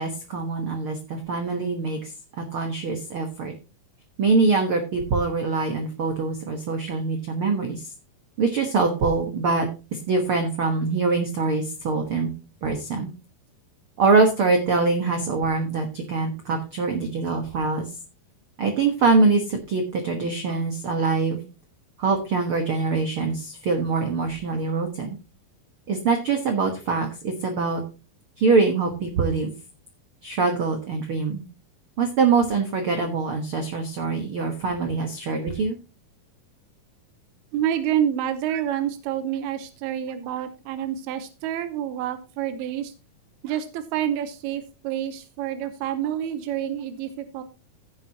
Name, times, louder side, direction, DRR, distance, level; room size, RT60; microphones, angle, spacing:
voice 1, 0.0-3.5 4.2-7.9 8.4-12.3 12.6-13.1 14.0-17.9 18.6-21.4 22.0-25.2 25.9-27.8 28.4-29.5 30.2-31.4 32.0-35.8, right 4 dB, 70° right, 4 dB, 1.2 m, -24 dB
voice 2, 37.5-42.9 43.4-47.4, right 10 dB, 90° right, 10 dB, 2.8 m, -28 dB
16.0 x 7.4 x 2.8 m, 0.31 s
omnidirectional pair, 4.4 m